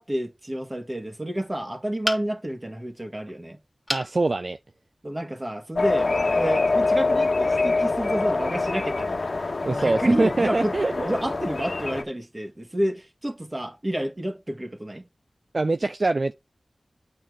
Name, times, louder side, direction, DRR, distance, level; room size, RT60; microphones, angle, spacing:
voice 1, 0.0-3.6 5.0-9.2 9.6-10.8 11.0-15.1, right 1 dB, 25° right, 1.9 m, -29 dB
sound 1, 2.0-2.6 3.9-4.2 4.7-4.8 5.2-5.3, left 1 dB, 10° left, 1.9 m, -29 dB
voice 2, 3.9-4.6 9.6-11.1 15.5-16.3, right 2 dB, 55° right, 0.4 m, -24 dB
sound 2, 5.8-12.0, left 3 dB, 70° left, 1.2 m, -25 dB
8.8 x 4.3 x 4.9 m
wide cardioid pair, 60°, 0 cm